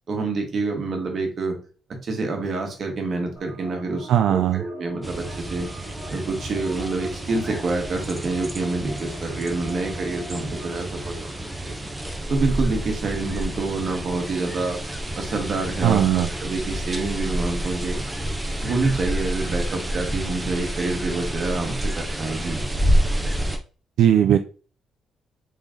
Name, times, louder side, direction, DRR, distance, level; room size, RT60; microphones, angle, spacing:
voice 1, 0.1-1.5 2.0-5.7 6.1-11.8 12.3-14.8 15.2-18.0 18.6-22.6, right 3 dB, 50° right, 3 dB, 1.5 m, -27 dB
sound 1, 3.4-10.7, right 1 dB, 30° left, 1.6 m, -43 dB
voice 2, 4.1-4.6 15.8-16.3 24.0-24.4, right 10 dB, 80° right, 7 dB, 0.3 m, -18 dB
sound 2, 5.0-23.6, right 1 dB, 10° right, 0.8 m, -29 dB
3.8 x 3.2 x 3.7 m, 0.38 s
cardioid pair, 90°, 0 cm